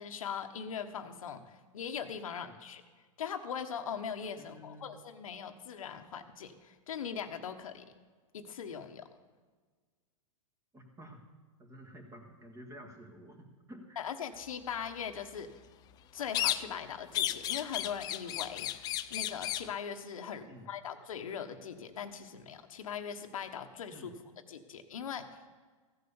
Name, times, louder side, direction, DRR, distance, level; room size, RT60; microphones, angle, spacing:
voice 1, 0.0-2.8 3.2-7.8 8.3-9.1 14.0-15.5 16.1-18.7 19.1-24.1 24.5-25.3, left 7 dB, 85° left, 7 dB, 1.2 m, -40 dB
voice 2, 4.4-5.0 10.7-11.2 11.6-14.0 20.5-20.7 23.9-24.2, equal, 15° right, 3 dB, 2.0 m, -51 dB
sound 1, 16.3-16.9 17.1-19.7, left 13 dB, 25° left, 0.4 m, -34 dB
15.0 x 8.0 x 7.1 m, 1.4 s
hypercardioid pair, 140°, 17 cm